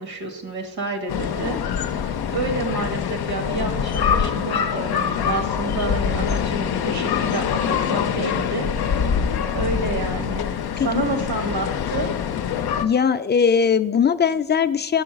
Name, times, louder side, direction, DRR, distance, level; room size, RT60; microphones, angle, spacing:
voice 1, 0.0-8.7 9.5-10.4 10.8-12.1, right 3 dB, 80° right, 5 dB, 1.2 m, -29 dB
sound 1, 1.1-12.8, left 7 dB, 90° left, 0.5 m, -24 dB
voice 2, 12.8-15.0, left 6 dB, 30° left, 11 dB, 0.4 m, -19 dB
6.3 x 3.8 x 5.8 m, 0.88 s
cardioid pair, 55°, 37 cm